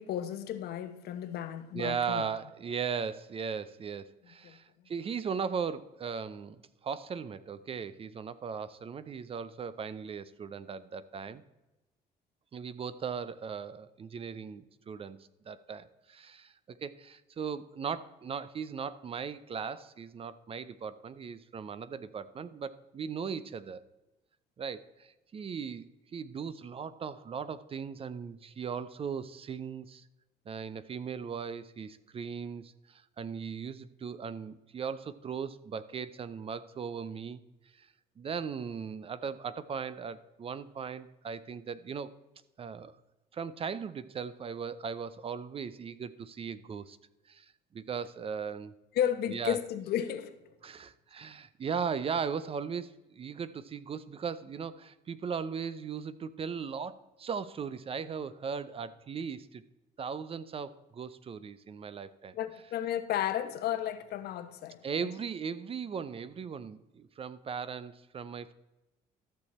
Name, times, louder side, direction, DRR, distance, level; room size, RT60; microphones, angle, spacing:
voice 1, 0.0-2.3 4.4-4.6 48.9-50.4 62.3-65.1, left 10 dB, 70° left, 1.0 m, -33 dB
voice 2, 1.7-11.4 12.5-15.2 15.5-23.8 24.6-25.9 26.1-30.0 30.5-37.4 37.7-37.9 38.2-42.1 42.6-42.9 43.3-47.0 47.3-48.7 49.3-49.6 50.6-59.6 60.0-62.3 64.8-68.5, right 6 dB, 35° right, 0.5 m, -38 dB
13.5 x 6.7 x 4.2 m
cardioid pair, 110°, 17 cm